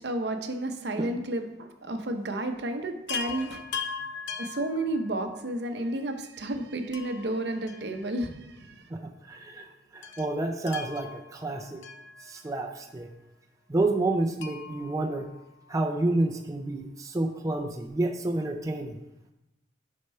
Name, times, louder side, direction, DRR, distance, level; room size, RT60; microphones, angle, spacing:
voice 1, 0.0-3.6 4.4-8.9, right 1 dB, 65° right, 6 dB, 0.7 m, -32 dB
Chime, 3.1-5.5 6.9-8.5 8.7-8.8 10.0-12.7 14.4-16.0 17.6-17.7 17.9-18.0, left 6 dB, 85° left, 0.6 m, -40 dB
voice 2, 8.9-11.8 12.2-13.1 13.7-15.3 15.7-19.0, right 2 dB, 20° right, 2 dB, 0.4 m, -29 dB
6.5 x 4.4 x 5.4 m, 0.94 s
head